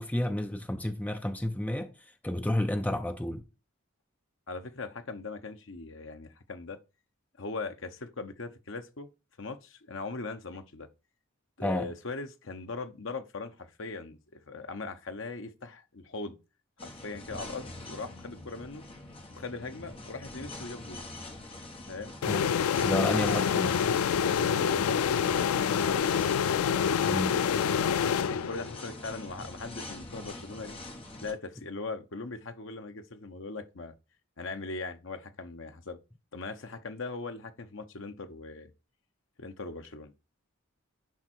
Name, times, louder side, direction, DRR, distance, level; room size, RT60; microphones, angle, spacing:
voice 1, 0.0-1.9 2.2-3.4 11.6-11.9 22.3-22.4 22.8-23.8 27.0-27.3, left 1 dB, 5° left, 0.5 m, -30 dB
voice 2, 4.5-6.8 7.4-9.1 9.4-10.9 11.6-14.2 14.5-16.4 16.8-18.8 19.3-21.0 21.9-22.2 24.2-26.0 26.8-27.2 28.2-30.7 31.2-33.9 34.4-36.0 36.3-38.7 39.4-40.1, left 3 dB, 60° left, 1.0 m, -40 dB
sound 1, 16.8-31.3, left 2 dB, 25° left, 1.5 m, -44 dB
sound 2, 22.2-28.9, left 7 dB, 80° left, 0.4 m, -27 dB
10.5 x 3.6 x 4.5 m
head